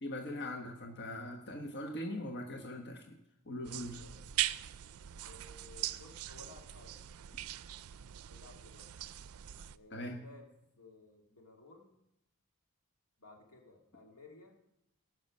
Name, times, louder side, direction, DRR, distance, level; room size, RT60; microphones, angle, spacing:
voice 1, 0.0-3.2 3.5-4.0 9.9-10.2, left 1 dB, 50° left, 3 dB, 1.2 m, -41 dB
voice 2, 1.4-1.8 3.9-4.2 5.2-7.1 8.3-8.9 9.7-10.5 10.7-11.9 13.2-14.6, left 2 dB, 90° left, 1 dB, 2.3 m, -57 dB
sound 1, 3.6-9.8, right 13 dB, 70° right, 0.4 m, -41 dB
18.0 x 6.1 x 5.3 m, 0.89 s
head